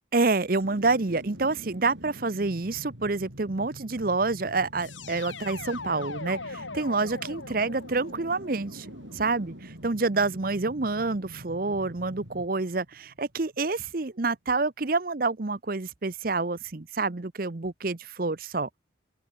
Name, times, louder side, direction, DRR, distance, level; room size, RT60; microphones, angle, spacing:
voice 1, 0.1-8.9 9.1-18.7, right 3 dB, 50° right, 0.9 m, -28 dB
sound 1, 0.6-13.7 14.0-14.1, equal, 80° right, 6.3 m, -45 dB
sound 2, 4.8-9.7, left 4 dB, 85° left, 6.9 m, -41 dB
head